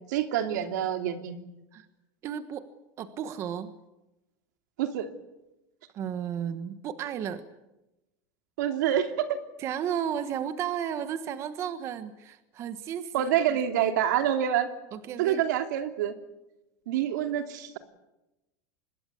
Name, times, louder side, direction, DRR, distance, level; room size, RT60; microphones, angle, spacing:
voice 1, 0.0-1.4 4.8-5.1 8.6-9.4 13.1-14.7 15.2-16.2 16.9-17.8, right 10 dB, 80° right, 7 dB, 3.0 m, -27 dB
voice 2, 2.2-2.6 3.0-3.7 5.9-7.4 9.6-13.9 14.9-15.4, right 9 dB, 30° right, 11 dB, 1.3 m, -34 dB
25.5 x 21.0 x 8.4 m, 0.96 s
supercardioid pair, 170°, 10 cm